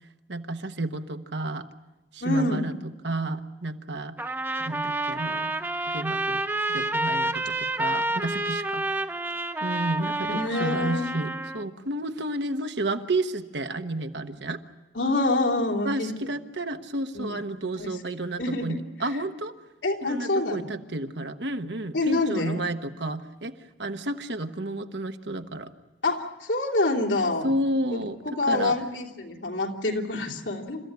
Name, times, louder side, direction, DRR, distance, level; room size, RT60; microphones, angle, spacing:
voice 1, 0.3-1.7 2.1-4.2 4.6-5.5 5.9-9.0 9.6-14.6 15.8-19.5 20.0-25.7 27.4-28.7, right 1 dB, 75° right, 7 dB, 1.3 m, -31 dB
voice 2, 2.2-2.6 10.3-11.1 14.9-16.1 17.1-17.4 17.7-17.9 18.4-18.8 19.8-20.7 21.9-22.6 26.0-27.5 27.9-30.9, left 2 dB, 85° left, 0 dB, 3.2 m, -26 dB
Trumpet, 4.2-11.6, right 2 dB, 10° right, 0.8 m, -29 dB
29.0 x 14.5 x 9.5 m, 1.1 s
head